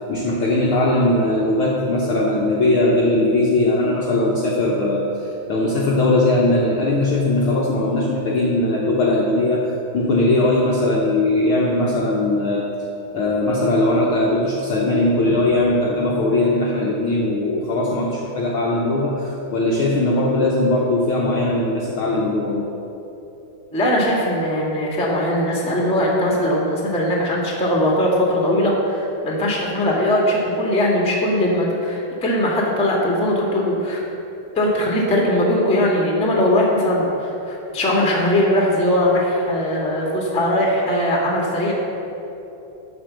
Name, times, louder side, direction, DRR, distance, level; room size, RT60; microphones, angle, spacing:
voice 1, 0.0-12.7 13.1-22.7, left 2 dB, 70° left, -3 dB, 1.3 m, -19 dB
voice 2, 23.7-34.0 34.5-41.7, left 1 dB, 5° left, -3 dB, 0.8 m, -20 dB
12.5 x 4.4 x 7.5 m, 2.9 s
omnidirectional pair, 3.4 m